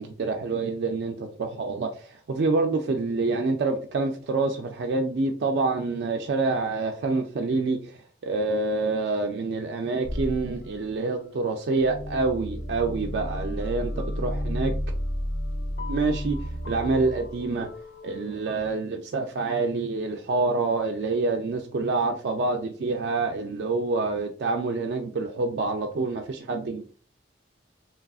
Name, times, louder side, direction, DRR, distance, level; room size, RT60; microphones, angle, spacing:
voice 1, 0.0-14.8 15.9-16.4 16.7-17.7 18.0-26.8, right 3 dB, 65° right, 3 dB, 0.3 m, -27 dB
sound 1, 10.0-18.7, equal, 75° left, 0.5 m, -33 dB
3.3 x 2.4 x 2.3 m, 0.40 s
head